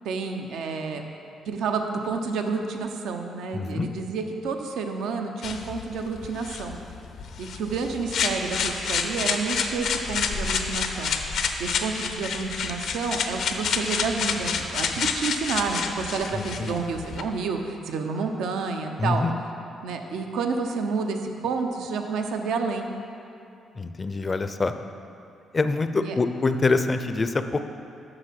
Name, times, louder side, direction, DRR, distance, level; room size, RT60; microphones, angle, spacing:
voice 1, 0.0-1.0 1.5-6.8 7.4-11.1 11.6-19.2 19.8-22.9 26.0-26.2, right 4 dB, 80° right, 4 dB, 0.7 m, -29 dB
voice 2, 3.5-3.9 16.3-16.8 19.0-19.3 23.8-24.7 25.5-27.6, left 3 dB, 30° left, 9 dB, 0.5 m, -25 dB
sound 1, 5.4-17.2, left 5 dB, 70° left, 0.6 m, -29 dB
7.9 x 6.2 x 5.8 m, 2.6 s
cardioid pair, 90°, 0 cm